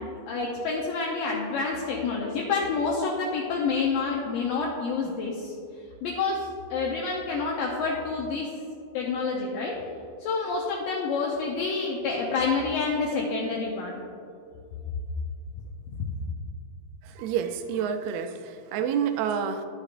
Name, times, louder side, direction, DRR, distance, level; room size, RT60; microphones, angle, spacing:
voice 1, 0.0-5.5 6.0-8.5 8.9-9.8 10.2-14.0 15.9-16.0, left 4 dB, 75° left, -2 dB, 2.1 m, -28 dB
voice 2, 17.0-19.7, right 8 dB, 85° right, 7 dB, 2.5 m, -28 dB
12.0 x 6.5 x 2.5 m, 2.5 s
omnidirectional pair, 4.5 m